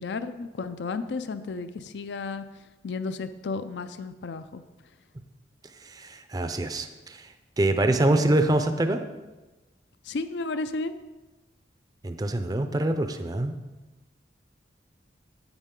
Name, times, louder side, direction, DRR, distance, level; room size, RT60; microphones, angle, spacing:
voice 1, 0.0-4.6 10.0-11.0, left 3 dB, 70° left, 11 dB, 0.4 m, -33 dB
voice 2, 5.9-7.2 7.6-9.0 12.0-13.5, right 1 dB, 20° right, 7 dB, 0.5 m, -25 dB
9.9 x 8.2 x 3.7 m, 1.1 s
head